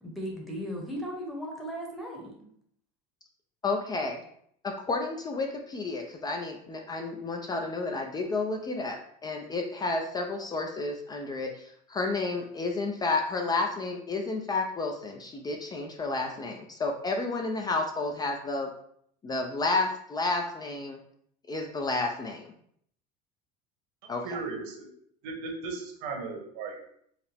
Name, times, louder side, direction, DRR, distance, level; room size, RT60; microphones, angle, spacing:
voice 1, 0.0-2.3, equal, ahead, -2 dB, 0.9 m, -36 dB
voice 2, 3.6-4.2 4.6-18.7 19.2-21.0 21.5-22.5 24.1-24.4, left 3 dB, 20° left, 2 dB, 0.4 m, -31 dB
voice 3, 24.2-24.9 25.2-26.9, right 4 dB, 80° right, 1 dB, 1.2 m, -36 dB
4.7 x 2.1 x 3.3 m, 0.67 s
supercardioid pair, 130°, 21 cm